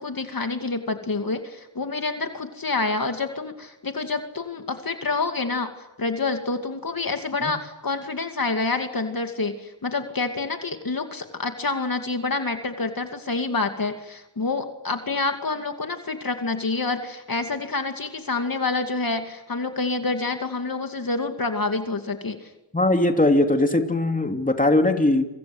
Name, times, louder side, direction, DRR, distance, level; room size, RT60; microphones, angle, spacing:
voice 1, 0.0-22.5, left 3 dB, 50° left, 6 dB, 2.6 m, -27 dB
voice 2, 22.7-25.3, left 2 dB, 20° left, 5 dB, 3.1 m, -20 dB
28.0 x 25.5 x 8.0 m, 0.93 s
wide cardioid pair, 80°, 45 cm